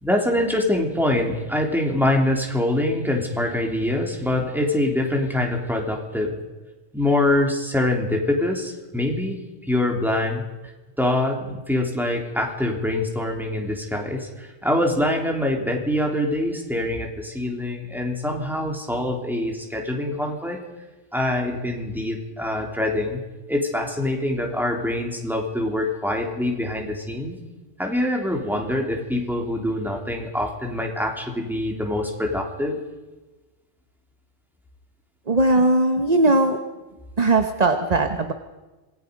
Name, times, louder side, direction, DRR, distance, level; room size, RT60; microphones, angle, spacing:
voice 1, 0.0-6.4 6.9-10.4 11.0-20.6 21.1-23.2 23.5-27.4 27.8-32.8, left 1 dB, ahead, 1 dB, 3.4 m, -24 dB
voice 2, 35.3-36.6 37.2-38.3, right 2 dB, 30° right, 7 dB, 1.1 m, -19 dB
26.5 x 20.5 x 5.3 m, 1.2 s
omnidirectional pair, 1.4 m